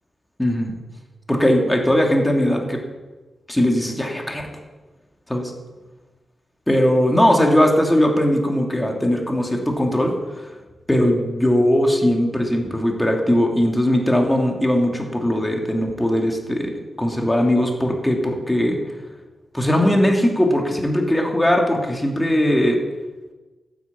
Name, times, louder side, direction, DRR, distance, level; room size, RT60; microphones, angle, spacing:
voice 1, 0.4-0.8 1.3-2.8 3.5-4.4 5.3-5.5 6.7-10.5 10.9-16.7 17.0-18.8 19.5-22.8, left 1 dB, 10° left, 1 dB, 2.9 m, -19 dB
12.0 x 9.4 x 8.8 m, 1.2 s
wide cardioid pair, 100°, 0 cm